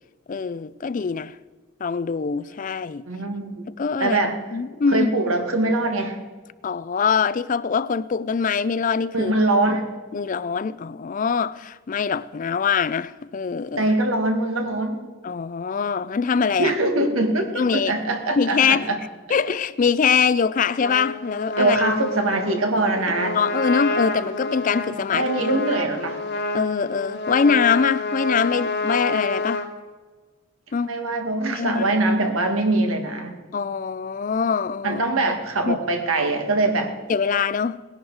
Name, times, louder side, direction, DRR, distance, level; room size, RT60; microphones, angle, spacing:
voice 1, 0.3-1.4 1.8-3.1 3.8-4.2 4.5-5.1 6.6-9.3 10.1-13.9 15.2-16.8 17.5-17.9 18.4-18.9 19.3-21.8 23.2-25.5 26.5-29.7 30.7-30.9 31.5-31.9 33.5-35.0 35.7-35.8 37.1-37.8, left 6 dB, 40° left, 0.4 m, -23 dB
voice 2, 3.1-3.7 4.0-4.4 4.9-6.2 9.1-9.8 13.8-15.0 16.6-19.0 21.6-23.4 25.1-26.2 30.9-33.3 34.8-36.9, right 2 dB, 85° right, 1.8 m, -22 dB
Trumpet, 20.8-29.7, left 3 dB, 55° left, 1.3 m, -28 dB
19.0 x 11.0 x 4.7 m
head